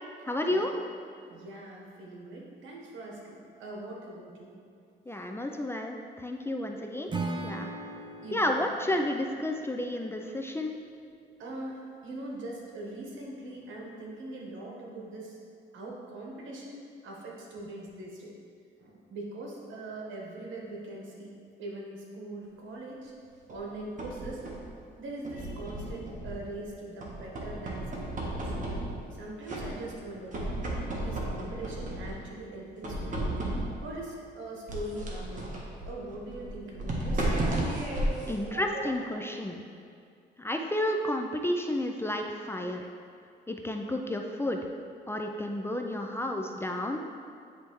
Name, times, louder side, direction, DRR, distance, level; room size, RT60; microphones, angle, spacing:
voice 1, 0.2-0.7 5.1-7.1 7.4-7.7 8.3-10.8 38.3-39.6 40.4-42.9 43.5-44.6 45.1-47.0, left 1 dB, 10° left, 2 dB, 0.4 m, -31 dB
voice 2, 1.2-4.5 8.2-8.5 11.4-15.4 15.7-18.3 18.8-21.3 21.6-23.1 23.5-24.4 25.0-28.4 29.1-30.7 31.0-33.3 33.8-37.3 38.2-38.6, right 2 dB, 75° right, -2 dB, 1.3 m, -42 dB
Acoustic guitar / Strum, 7.1-10.3, right 2 dB, 25° right, 0.6 m, -38 dB
sound 1, 23.5-24.7 25.2-26.6 27.0-29.2 29.5-30.0 30.3-32.3 32.8-33.9 34.7-39.2, right 1 dB, 40° right, 1.2 m, -34 dB
9.7 x 3.3 x 3.1 m, 2.4 s
cardioid pair, 90°, 20 cm